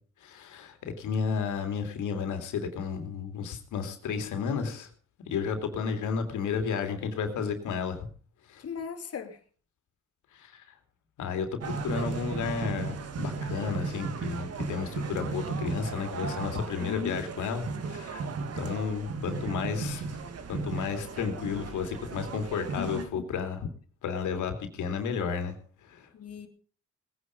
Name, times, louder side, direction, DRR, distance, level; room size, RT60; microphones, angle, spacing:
voice 1, 0.2-4.9 5.3-8.1 8.5-8.6 10.3-10.8 11.2-18.3 18.6-20.1 20.5-23.7 24.0-25.6 25.8-26.1, left 6 dB, 80° left, 3.0 m, -32 dB
voice 2, 8.6-9.4 16.8-17.2 22.8-23.2 26.1-26.5, left 7 dB, 50° left, 2.9 m, -37 dB
sound 1, 11.6-23.1, right 4 dB, 55° right, 1.9 m, -35 dB
19.0 x 9.7 x 5.3 m
cardioid pair, 90°, 30 cm